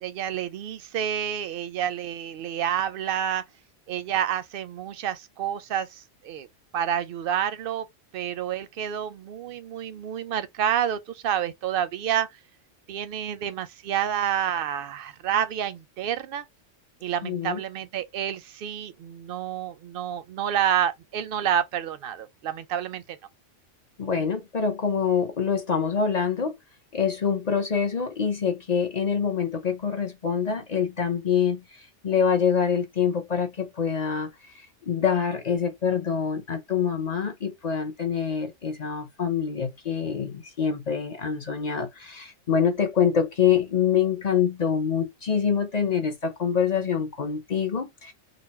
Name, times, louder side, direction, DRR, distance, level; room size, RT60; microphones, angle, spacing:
voice 1, 0.0-3.4 3.9-6.5 6.7-7.9 8.1-12.4 12.9-16.5 17.0-23.2, right 9 dB, 60° right, 0.6 m, -29 dB
voice 2, 17.2-17.6 24.0-26.6 26.9-31.6 32.0-34.3 34.8-48.1, left 7 dB, 40° left, 0.6 m, -25 dB
4.0 x 2.0 x 4.1 m
omnidirectional pair, 1.3 m